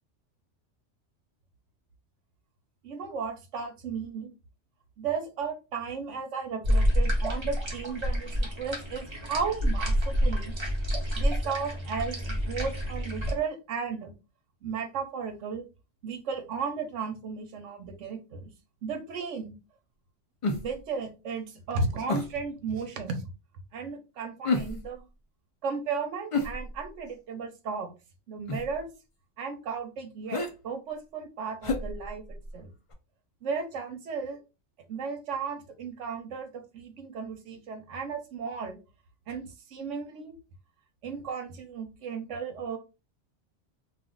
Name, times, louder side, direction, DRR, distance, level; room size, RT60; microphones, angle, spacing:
voice 1, 2.8-4.3 5.0-10.5 11.2-14.1 14.6-15.6 16.0-18.5 18.8-19.6 20.6-23.2 23.7-25.1 25.6-27.9 28.3-28.9 29.4-32.7 33.4-34.4 34.9-38.8 39.3-40.4 41.0-42.8, right 5 dB, 80° right, 6 dB, 1.0 m, -35 dB
sound 1, 6.6-13.3, equal, 25° right, 0.8 m, -28 dB
sound 2, 20.4-20.9 22.1-22.4 24.4-25.0 26.3-27.1 28.5-28.8 30.3-30.5 31.6-32.6 32.9-33.0, left 3 dB, 50° left, 0.4 m, -31 dB
2.4 x 2.4 x 3.6 m, 0.29 s
omnidirectional pair, 1.2 m